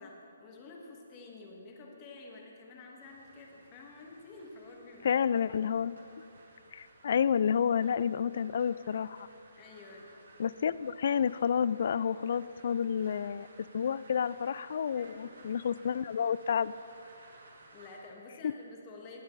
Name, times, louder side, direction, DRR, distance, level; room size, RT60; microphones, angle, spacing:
voice 1, 0.0-5.4 9.6-10.1 15.0-15.4 17.7-19.2, left 3 dB, 25° left, -1 dB, 1.9 m, -50 dB
sound 1, 3.0-18.0, right 2 dB, 75° right, 2.8 m, -58 dB
voice 2, 5.0-5.9 6.7-9.3 10.4-13.5 13.7-16.7 18.4-18.5, left 7 dB, 55° left, 18 dB, 0.3 m, -30 dB
19.0 x 9.0 x 3.3 m, 2.8 s
hypercardioid pair, 155°, 0 cm